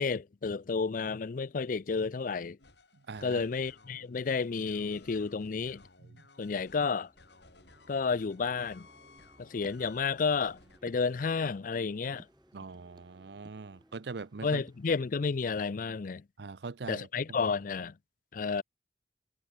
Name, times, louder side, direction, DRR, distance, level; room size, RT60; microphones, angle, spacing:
voice 1, 0.0-2.6 3.2-5.8 6.4-7.1 7.9-8.9 9.4-12.3 14.4-16.2 16.9-17.9 18.3-18.6, left 5 dB, 50° left, 0.4 m, -31 dB
sound 1, 2.6-10.8, left 3 dB, 70° left, 7.8 m, -58 dB
voice 2, 3.1-3.4 12.5-14.6 16.4-17.1, right 4 dB, 70° right, 0.6 m, -42 dB
sound 2, 6.8-15.8, equal, 5° right, 6.4 m, -65 dB
sound 3, 8.9-15.2, right 1 dB, 25° right, 3.0 m, -60 dB
head